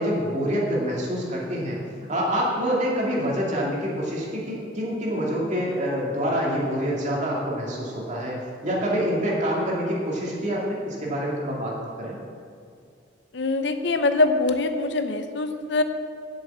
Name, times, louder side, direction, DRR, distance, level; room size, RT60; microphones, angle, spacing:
voice 1, 0.0-1.8 2.1-12.2, equal, 40° right, -4 dB, 2.5 m, -26 dB
voice 2, 13.3-15.8, left 2 dB, 70° left, 8 dB, 0.7 m, -23 dB
7.8 x 7.0 x 8.2 m, 2.3 s
head